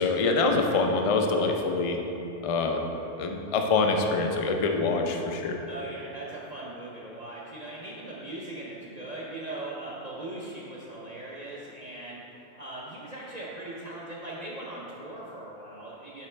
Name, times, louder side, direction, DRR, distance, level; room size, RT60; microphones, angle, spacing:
voice 1, 0.0-2.0 2.4-2.8 3.2-5.6, left 3 dB, 50° left, 3 dB, 0.4 m, -25 dB
voice 2, 5.7-16.3, right 2 dB, 40° right, -6 dB, 0.7 m, -40 dB
8.7 x 4.1 x 3.3 m, 2.9 s
omnidirectional pair, 1.2 m